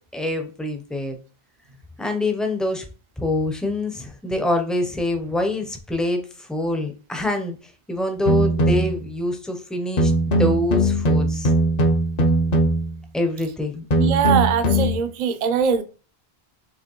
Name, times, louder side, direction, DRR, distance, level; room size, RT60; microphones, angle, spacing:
voice 1, 0.1-1.2 2.0-2.9 3.2-7.6 7.9-11.5 13.1-13.8, left 1 dB, ahead, 0.5 m, -25 dB
sound 1, 8.3-9.0 10.0-13.0 13.9-15.0, right 1 dB, 45° left, 0.6 m, -20 dB
voice 2, 14.0-15.8, right 7 dB, 55° right, 0.6 m, -21 dB
4.9 x 3.0 x 3.0 m
omnidirectional pair, 1.1 m